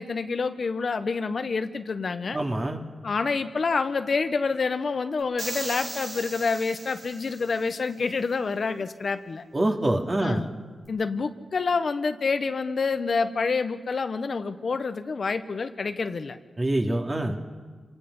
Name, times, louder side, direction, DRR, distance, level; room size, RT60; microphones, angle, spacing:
voice 1, 0.0-2.4 3.0-9.4 10.2-10.5 10.9-16.4, left 4 dB, 60° left, 9 dB, 1.1 m, -27 dB
voice 2, 2.3-2.8 9.5-10.4 16.6-17.4, right 1 dB, 35° right, 2 dB, 2.6 m, -25 dB
sound 1, 5.4-7.7, right 2 dB, 65° right, 4.6 m, -37 dB
27.0 x 19.5 x 5.6 m, 1.5 s
cardioid pair, 50°, 0 cm